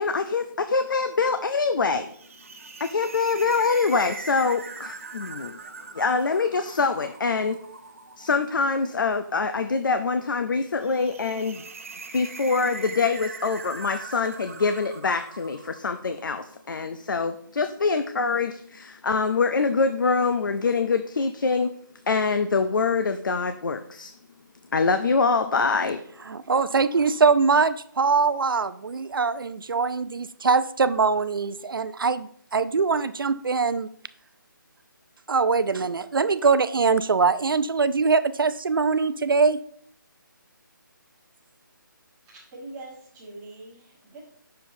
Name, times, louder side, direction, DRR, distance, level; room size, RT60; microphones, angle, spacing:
voice 1, 0.0-2.1 2.8-5.6 5.9-7.6 8.2-11.6 12.1-21.7 22.1-24.1 24.7-26.0, left 4 dB, 70° left, 8 dB, 0.5 m, -24 dB
sound 1, 2.1-16.4, right 4 dB, 40° right, 0.6 m, -42 dB
voice 2, 26.3-33.9 35.3-39.6, right 4 dB, 90° right, 14 dB, 0.5 m, -22 dB
voice 3, 42.5-44.2, right 2 dB, 10° right, -6 dB, 1.4 m, -42 dB
7.8 x 6.6 x 2.7 m, 0.63 s
hypercardioid pair, 170°, 11 cm